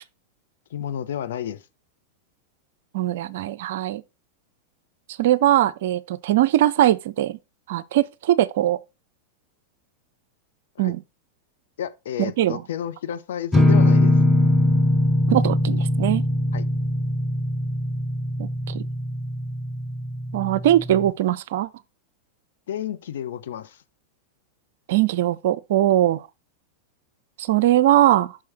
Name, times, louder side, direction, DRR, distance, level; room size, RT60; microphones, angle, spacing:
voice 1, 0.7-1.6 10.8-11.0 11.8-14.2 16.5-16.6 22.7-23.8, left 10 dB, 60° left, 0.7 m, -31 dB
voice 2, 2.9-4.0 5.2-7.4 7.7-8.8 10.8-11.0 12.2-12.6 15.3-16.2 18.4-18.5 18.7-18.8 20.3-21.7 24.9-26.2 27.4-28.4, right 13 dB, 55° right, 0.4 m, -20 dB
sound 1, 13.5-21.1, left 1 dB, ahead, 0.8 m, -21 dB
6.0 x 4.7 x 4.3 m
figure-of-eight pair, 90°, 0 cm